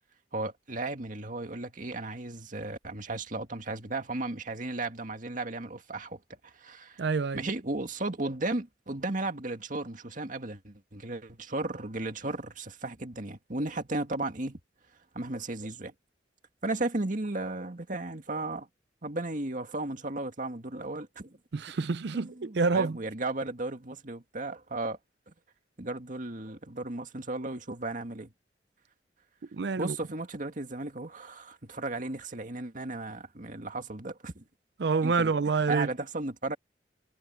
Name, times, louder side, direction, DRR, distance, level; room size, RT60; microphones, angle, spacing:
voice 1, 0.3-7.0 7.3-14.6 15.1-15.9 16.6-18.7 19.0-21.4 22.1-25.0 25.3-25.4 25.8-28.3 29.8-34.4 35.0-35.3 35.7-36.6, right 2 dB, 45° right, 2.1 m, -35 dB
voice 2, 7.0-7.5 21.5-23.0 29.5-30.0 34.8-35.9, right 4 dB, 65° right, 0.5 m, -27 dB
head